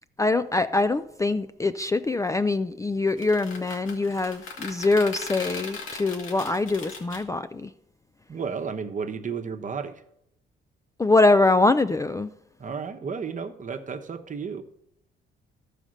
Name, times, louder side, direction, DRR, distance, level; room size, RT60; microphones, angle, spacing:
voice 1, 0.2-7.7 11.0-12.3, left 2 dB, 15° left, 10 dB, 0.4 m, -23 dB
sound 1, 3.1-7.2, left 4 dB, 85° left, 2.0 m, -38 dB
voice 2, 8.3-10.0 12.6-14.6, right 5 dB, 40° right, 7 dB, 1.0 m, -33 dB
12.5 x 5.0 x 6.4 m, 0.77 s
cardioid pair, 90°, 20 cm